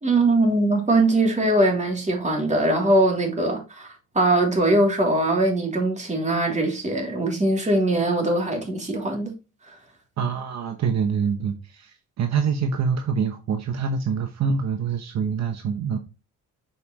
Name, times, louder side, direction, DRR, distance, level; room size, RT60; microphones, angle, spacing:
voice 1, 0.0-9.3 9.7-9.8, right 2 dB, 25° right, 2.9 m, -21 dB
voice 2, 10.2-16.0, right 6 dB, 60° right, 0.9 m, -25 dB
6.8 x 4.8 x 3.0 m
cardioid pair, 90°, 30 cm